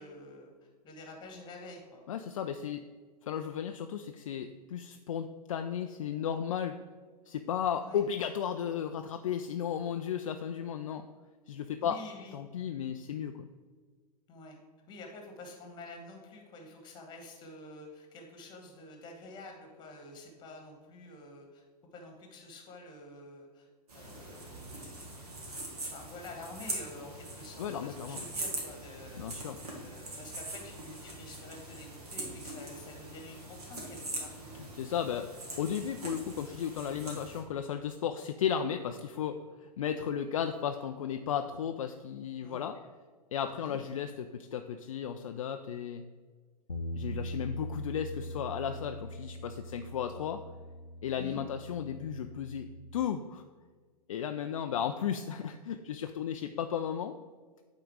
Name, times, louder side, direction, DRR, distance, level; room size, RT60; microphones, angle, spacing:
voice 1, 0.0-2.0 7.8-8.0 11.8-12.4 14.3-14.6 14.9-21.6 21.9-23.7 23.9-24.9 25.9-29.3 29.7-34.4 42.4-42.8 43.6-43.8 51.2-51.4, left 2 dB, 20° left, 3 dB, 1.4 m, -48 dB
voice 2, 2.1-2.8 3.2-6.8 7.3-11.0 11.5-12.0 12.3-13.5 27.6-28.2 29.2-29.6 34.7-35.3 35.6-42.8 43.3-46.0 46.9-50.4 51.0-52.7 52.9-53.4 54.1-57.1, left 8 dB, 55° left, 7 dB, 0.4 m, -34 dB
sound 1, 23.9-37.4, right 2 dB, 65° right, 2.0 m, -42 dB
Bass guitar, 46.7-52.9, equal, 85° left, 0.7 m, -42 dB
8.8 x 3.8 x 4.7 m, 1.5 s
figure-of-eight pair, 105°, 21 cm